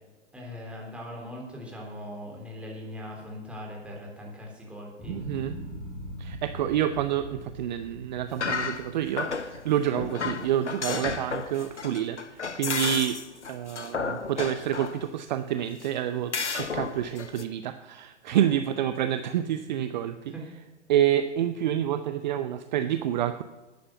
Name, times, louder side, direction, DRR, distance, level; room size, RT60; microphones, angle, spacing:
voice 1, 0.3-5.2 18.3-18.5 20.3-20.4, left 1 dB, 5° right, -2 dB, 3.6 m, -40 dB
sound 1, 5.0-11.3 11.7-12.3, left 1 dB, 15° left, 3.2 m, -42 dB
voice 2, 5.1-5.5 6.2-13.2 13.5-20.3 20.9-23.4, right 10 dB, 40° right, 10 dB, 0.6 m, -28 dB
sound 2, 8.3-9.6 10.0-15.0 15.8-15.9 16.3-17.4, left 5 dB, 80° left, 1.1 m, -32 dB
11.5 x 8.8 x 8.0 m, 1.2 s
figure-of-eight pair, 115°, 35 cm